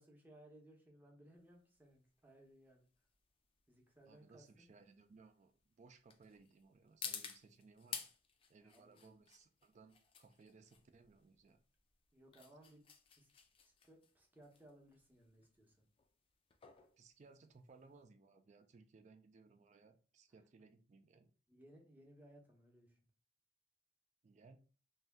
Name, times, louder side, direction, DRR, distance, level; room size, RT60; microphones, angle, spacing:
voice 1, 0.0-2.9 3.7-4.7 8.6-9.1 12.1-12.8 13.2-13.3 13.6-15.8 21.5-23.0, right 1 dB, 10° right, 0 dB, 0.7 m, -63 dB
sound 1, 1.4-18.1, left 7 dB, 30° left, 0.3 m, -53 dB
voice 2, 4.1-8.1 8.5-11.6 17.0-21.3 24.2-24.6, right 4 dB, 40° right, 8 dB, 0.4 m, -63 dB
2.6 x 2.2 x 3.3 m, 0.38 s
head